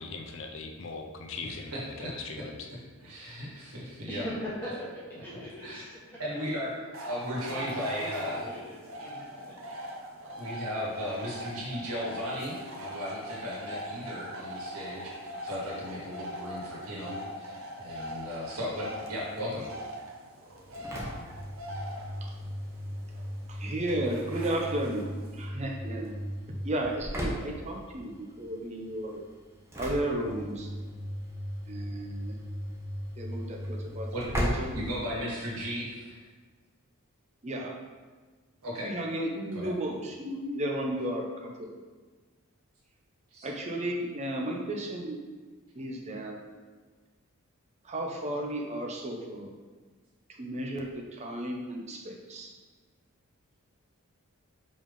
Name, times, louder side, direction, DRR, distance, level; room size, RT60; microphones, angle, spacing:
voice 1, 0.0-2.7, left 4 dB, 60° left, 3 dB, 0.6 m, -40 dB
voice 2, 1.4-2.4 3.0-4.3 5.2-5.8 6.2-8.5 10.4-15.2 15.4-19.7 34.1-36.3 38.6-38.9 39.5-39.7 43.3-43.5, equal, 85° right, -6 dB, 1.9 m, -36 dB
voice 3, 4.1-4.9 5.2-5.9 7.5-9.6, equal, 10° left, -8 dB, 1.3 m, -40 dB
sound 1, 6.9-25.4, equal, 65° right, 0.8 m, -42 dB
Engine / Slam, 20.5-35.6, equal, 10° right, 0.9 m, -37 dB
voice 4, 23.5-26.2 26.6-29.2 29.8-30.7 31.7-32.4 33.2-34.8 37.4-37.7 38.8-41.3 43.4-45.2 45.7-46.4 47.8-49.5 50.4-52.5, right 1 dB, 30° right, 0 dB, 0.7 m, -34 dB
5.2 x 3.5 x 5.3 m, 1.4 s
head